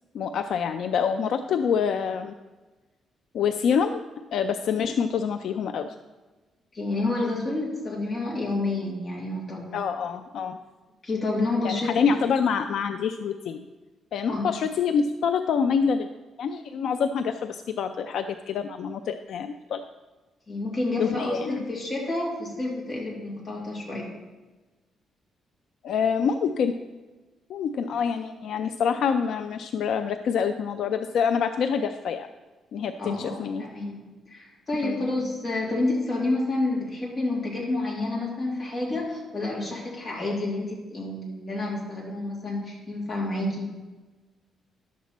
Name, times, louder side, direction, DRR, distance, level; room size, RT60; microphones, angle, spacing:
voice 1, 0.1-2.4 3.3-4.0 4.3-5.9 9.7-10.6 11.6-13.7 14.1-16.1 16.4-19.8 21.0-21.7 25.8-26.7 27.5-32.3 32.7-33.6 34.8-35.1, left 6 dB, 65° left, 8 dB, 0.4 m, -26 dB
voice 2, 6.7-9.8 11.0-11.9 14.3-14.5 20.5-24.1 33.0-43.8, left 2 dB, 25° left, -4 dB, 2.7 m, -29 dB
11.0 x 7.3 x 4.2 m, 1.2 s
cardioid pair, 150°, 0 cm